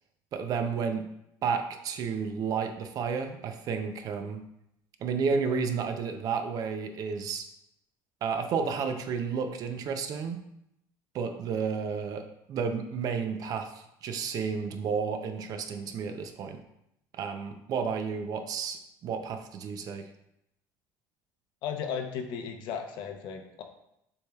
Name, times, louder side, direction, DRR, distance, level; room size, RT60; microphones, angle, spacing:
voice 1, 0.3-1.1 1.4-4.4 5.0-7.5 8.2-10.4 11.1-16.6 17.1-20.1, right 5 dB, 45° right, 7 dB, 0.5 m, -31 dB
voice 2, 21.6-23.6, left 7 dB, 60° left, 5 dB, 0.7 m, -35 dB
6.8 x 3.3 x 2.3 m, 0.79 s
cardioid pair, 135°, 9 cm